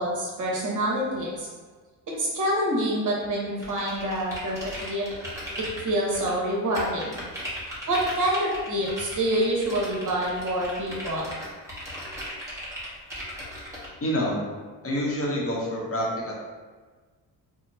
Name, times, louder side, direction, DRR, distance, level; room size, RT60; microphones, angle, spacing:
voice 1, 0.0-1.5 2.2-5.1 5.6-7.1 7.9-11.3, right 1 dB, 45° right, -3 dB, 1.0 m, -27 dB
sound 1, 3.6-6.3 6.7-13.9, equal, 5° right, 1.1 m, -37 dB
voice 2, 14.0-14.4 14.8-16.3, equal, 30° left, -3 dB, 0.8 m, -27 dB
2.8 x 2.0 x 2.6 m, 1.4 s
supercardioid pair, 60°, 44 cm